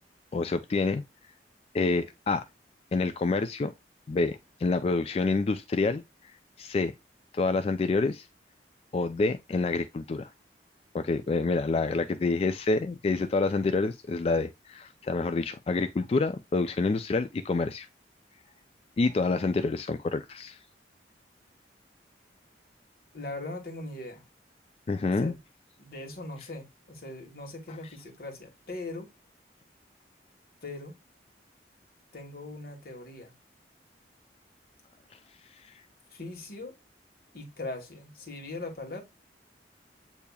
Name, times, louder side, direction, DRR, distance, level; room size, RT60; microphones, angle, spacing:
voice 1, 0.3-1.0 1.7-2.4 2.9-3.7 4.1-6.0 6.6-6.9 7.3-8.3 8.9-10.3 10.9-17.9 19.0-20.6 24.9-25.3 35.6-35.7, left 3 dB, 35° left, 0.3 m, -27 dB
voice 2, 23.1-24.2 25.2-25.4 25.8-29.1 30.6-30.9 32.1-33.3 36.1-36.7 37.3-39.0, left 2 dB, 55° left, 1.4 m, -40 dB
8.3 x 2.8 x 2.2 m
head